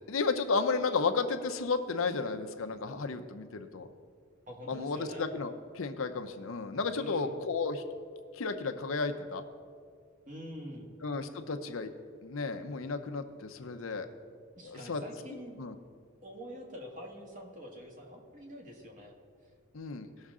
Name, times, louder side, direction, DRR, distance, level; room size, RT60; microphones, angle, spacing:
voice 1, 0.1-3.9 4.7-7.8 8.3-9.4 11.0-11.9 12.2-14.1 14.6-15.0 15.6-15.7 19.7-20.1, left 4 dB, 75° left, 7 dB, 0.7 m, -33 dB
voice 2, 4.5-5.2 6.9-7.3 10.3-10.9 14.6-15.6 16.2-19.2, equal, 40° right, 0 dB, 1.6 m, -45 dB
17.5 x 6.4 x 3.7 m, 2.1 s
head